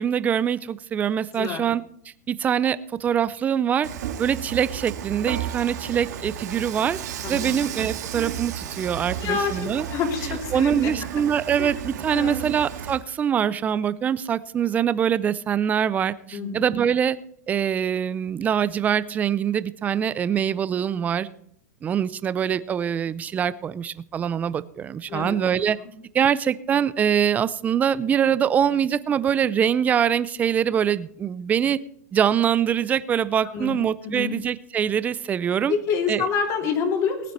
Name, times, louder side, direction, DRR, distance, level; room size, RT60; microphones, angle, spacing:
voice 1, 0.0-1.8 2.3-3.9 4.2-7.0 7.3-9.9 10.2-17.2 17.5-21.3 21.8-25.8 26.1-31.8 32.1-35.7 36.1-36.3, right 8 dB, 15° right, 16 dB, 0.5 m, -24 dB
Dishes pots and pans / Frying (food), 3.8-13.0, right 9 dB, 70° right, 2.0 m, -33 dB
voice 2, 7.2-7.6 9.2-10.9 11.6-11.7 12.1-12.4 16.3-16.7 25.1-25.4 33.5-33.7 34.0-34.3 35.7-37.3, left 5 dB, 35° left, 3 dB, 3.1 m, -27 dB
19.0 x 9.3 x 4.2 m, 0.67 s
supercardioid pair, 150°, 9 cm